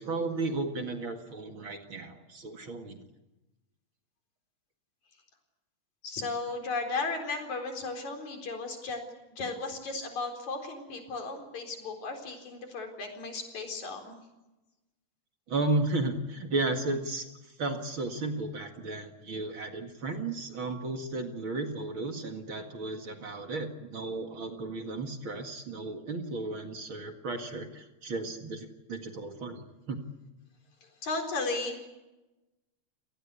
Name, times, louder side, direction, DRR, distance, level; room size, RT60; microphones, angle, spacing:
voice 1, 0.0-3.0 15.5-30.0, right 2 dB, 45° right, 5 dB, 2.5 m, -34 dB
voice 2, 6.0-9.0 9.3-14.2 31.0-31.9, left 3 dB, 75° left, 4 dB, 5.5 m, -35 dB
29.5 x 19.0 x 8.4 m, 1.1 s
omnidirectional pair, 3.3 m